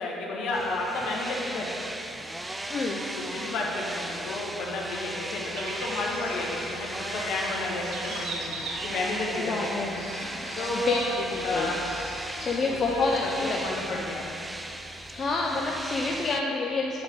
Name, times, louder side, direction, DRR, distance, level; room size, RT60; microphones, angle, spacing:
voice 1, 0.0-1.7 3.2-8.5 8.8-11.0 11.4-11.8 12.7-14.2, left 2 dB, 65° left, -3 dB, 1.4 m, -32 dB
sound 1, 0.5-16.4, right 1 dB, 10° right, 0.4 m, -37 dB
voice 2, 2.7-3.0 9.4-10.0 10.7-11.7 12.4-13.9 15.1-17.0, left 3 dB, 40° left, -1 dB, 0.6 m, -28 dB
sound 2, 5.5-13.1, left 2 dB, 85° left, 1.1 m, -44 dB
sound 3, 5.5-13.5, right 3 dB, 60° right, 0.8 m, -42 dB
7.4 x 3.9 x 6.3 m, 2.8 s
hypercardioid pair, 60°, 0 cm